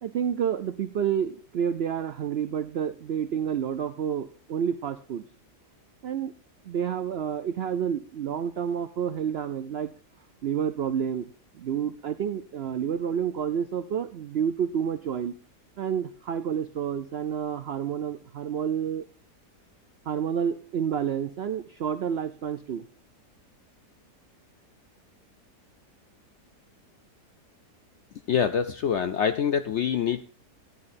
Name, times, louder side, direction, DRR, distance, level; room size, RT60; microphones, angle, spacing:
voice 1, 0.0-5.2 6.0-6.3 6.7-9.9 10.4-15.3 15.8-19.1 20.1-22.8, right 8 dB, 80° right, 11 dB, 0.5 m, -29 dB
voice 2, 28.3-30.2, left 8 dB, 70° left, 10 dB, 0.7 m, -25 dB
13.5 x 11.0 x 2.6 m, 0.42 s
omnidirectional pair, 1.7 m